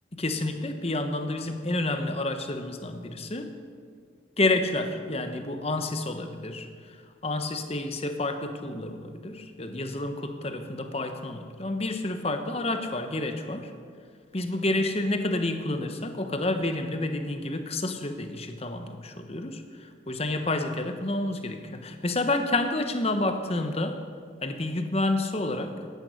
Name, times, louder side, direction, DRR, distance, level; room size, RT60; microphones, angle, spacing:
voice 1, 0.1-3.5 4.4-7.0 7.2-13.7 14.3-24.0 24.4-25.8, left 2 dB, 30° left, 7 dB, 1.1 m, -29 dB
16.5 x 10.5 x 6.4 m, 2.1 s
head